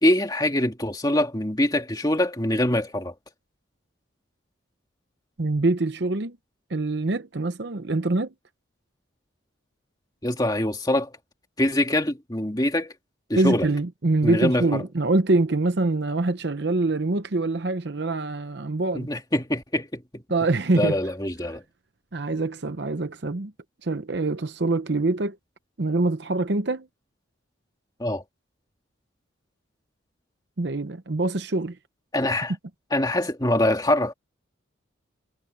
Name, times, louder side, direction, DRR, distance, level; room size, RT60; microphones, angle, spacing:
voice 1, 0.0-3.1 10.2-11.1 11.6-12.9 13.3-13.7 14.2-14.8 18.9-20.2 20.7-21.6 28.0-28.2 32.1-32.5 32.9-34.1, left 1 dB, 20° left, 2.3 m, -24 dB
voice 2, 5.4-6.4 6.7-8.3 13.4-19.1 20.3-21.0 22.1-23.5 23.8-25.4 25.8-26.9 30.6-31.8, right 2 dB, 55° right, 0.8 m, -24 dB
head